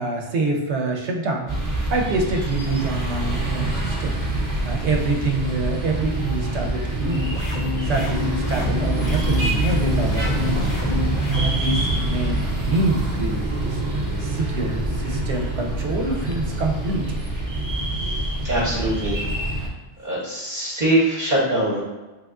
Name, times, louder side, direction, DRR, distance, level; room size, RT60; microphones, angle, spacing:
voice 1, 0.0-4.2 4.6-7.3 7.9-10.7 11.2-17.0, right 3 dB, 90° right, 2 dB, 0.9 m, -26 dB
sound 1, 1.5-19.7, right 2 dB, 20° right, 0.6 m, -25 dB
sound 2, 7.1-11.5, left 4 dB, 60° left, 0.6 m, -29 dB
voice 2, 18.0-19.3 20.0-21.8, right 1 dB, 50° right, -9 dB, 1.0 m, -23 dB
3.3 x 2.3 x 3.6 m, 1.2 s
omnidirectional pair, 1.1 m